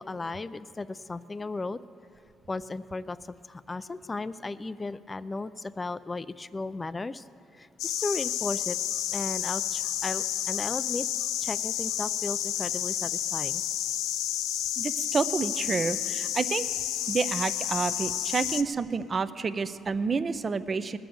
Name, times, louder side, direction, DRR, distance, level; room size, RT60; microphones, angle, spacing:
voice 1, 0.0-1.8 2.5-3.2 3.5-7.2 7.6-8.8 9.1-11.1 11.4-13.6, left 3 dB, 25° left, 14 dB, 0.4 m, -35 dB
sound 1, 7.8-18.6, left 11 dB, 85° left, 0.5 m, -30 dB
voice 2, 14.8-16.7 17.1-21.0, right 4 dB, 35° right, 13 dB, 0.6 m, -29 dB
19.5 x 7.0 x 7.7 m, 2.5 s
cardioid pair, 90°, 0 cm